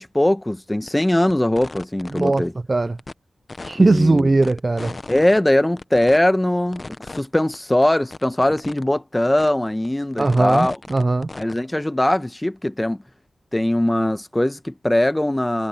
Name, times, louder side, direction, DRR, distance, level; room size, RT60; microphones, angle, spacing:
voice 1, 0.0-2.5 3.7-4.3 5.1-10.8 11.3-13.0 13.5-15.7, left 1 dB, 15° left, 1.0 m, -20 dB
sound 1, 0.9-1.0 1.3-2.4 3.0-3.1 3.5-5.4 5.8-6.2 6.7-7.2 7.5-7.6 7.8-7.9 8.1-8.8 9.4-9.5 9.9-11.6, left 3 dB, 40° left, 0.8 m, -36 dB
voice 2, 3.7-4.9 10.2-11.3, right 2 dB, 35° right, 0.3 m, -18 dB
wide cardioid pair, 95°, 0 cm